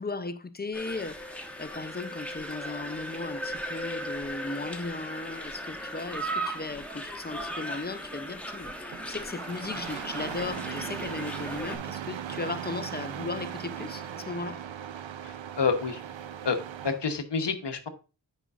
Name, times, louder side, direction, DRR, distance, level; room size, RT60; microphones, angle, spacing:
voice 1, 0.0-14.6, left 3 dB, 25° left, 0.4 m, -36 dB
sound 1, 0.7-11.8, right 1 dB, 5° left, 1.0 m, -37 dB
Engine starting, 8.9-17.0, right 9 dB, 90° right, 0.6 m, -38 dB
voice 2, 15.2-16.0 16.4-16.6 16.8-17.9, left 5 dB, 65° left, 1.0 m, -28 dB
9.1 x 5.2 x 2.4 m
wide cardioid pair, 85°, 44 cm